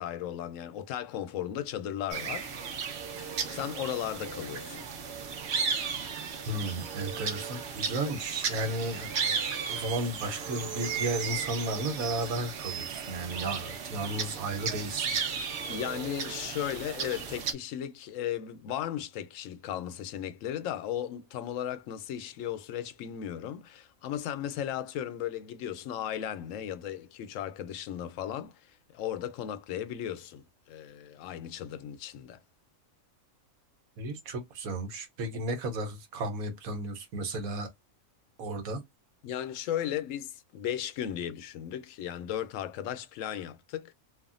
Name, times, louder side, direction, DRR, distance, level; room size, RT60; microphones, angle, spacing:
voice 1, 0.0-2.5 3.2-4.9 15.7-28.6 28.9-32.4 39.2-43.9, left 10 dB, 70° left, 0.9 m, -36 dB
sound 1, 2.1-17.5, right 6 dB, 60° right, 0.8 m, -35 dB
voice 2, 6.5-15.2 34.0-37.7 38.4-38.8, right 1 dB, 80° right, 1.2 m, -34 dB
3.4 x 2.1 x 2.4 m
omnidirectional pair, 1.5 m